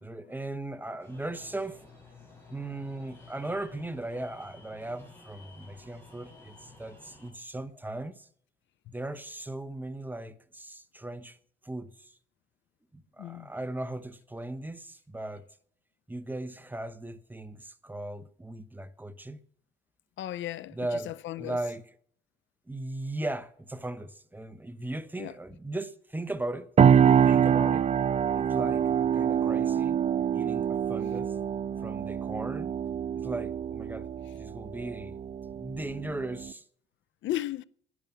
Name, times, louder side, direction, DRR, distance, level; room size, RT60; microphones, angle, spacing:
voice 1, 0.0-1.9 2.5-8.3 8.9-11.4 11.6-12.1 12.9-15.5 16.1-19.4 20.7-21.9 22.7-27.8 28.3-30.0 30.3-31.4 31.8-32.8 33.1-34.1 34.3-35.2 35.6-36.6, right 2 dB, 10° right, 0.9 m, -38 dB
sound 1, 1.0-7.3, left 3 dB, 10° left, 6.6 m, -53 dB
voice 2, 20.2-20.8 21.1-21.6 25.2-25.3 37.2-37.6, left 14 dB, 70° left, 0.5 m, -34 dB
sound 2, 26.8-36.5, right 8 dB, 35° right, 0.5 m, -25 dB
11.0 x 10.5 x 7.0 m
cardioid pair, 90°, 20 cm